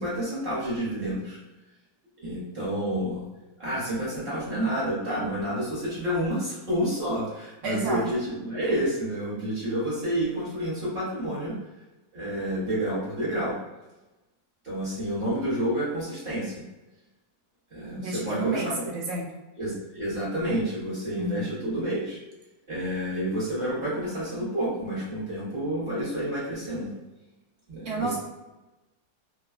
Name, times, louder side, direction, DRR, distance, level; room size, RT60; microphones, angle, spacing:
voice 1, 0.0-1.4 2.2-3.2 3.6-11.5 12.1-13.6 14.6-16.6 17.7-18.7 19.6-22.2 22.7-26.9 27.7-28.2, right 1 dB, 35° right, -8 dB, 1.1 m, -29 dB
voice 2, 7.6-8.1 17.9-19.3 21.2-21.5 27.8-28.2, right 2 dB, 75° right, -3 dB, 0.7 m, -30 dB
2.9 x 2.3 x 2.3 m, 1.1 s
omnidirectional pair, 2.0 m